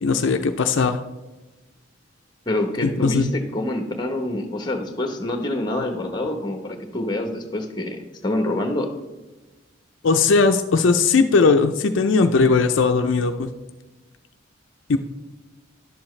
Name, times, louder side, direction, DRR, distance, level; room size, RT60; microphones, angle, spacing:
voice 1, 0.0-1.0 2.8-3.3 10.0-13.5 14.9-15.0, left 4 dB, 65° left, 6 dB, 0.5 m, -18 dB
voice 2, 2.5-8.9, left 1 dB, 20° left, 5 dB, 1.0 m, -26 dB
11.5 x 7.2 x 3.2 m, 1.1 s
head